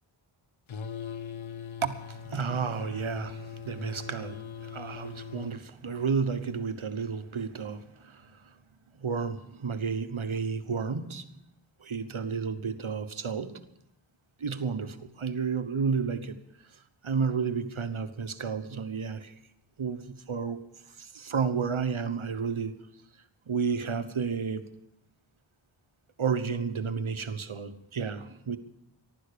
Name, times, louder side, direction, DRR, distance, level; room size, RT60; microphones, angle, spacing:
sound 1, 0.7-5.6, left 6 dB, 75° left, 0.7 m, -41 dB
voice 1, 1.8-8.5 9.0-11.3 11.8-13.6 14.4-16.4 17.0-19.3 19.8-20.6 21.0-22.7 23.5-24.6 26.2-28.6, right 5 dB, 80° right, 1.2 m, -31 dB
15.0 x 12.0 x 6.8 m
wide cardioid pair, 45°, 48 cm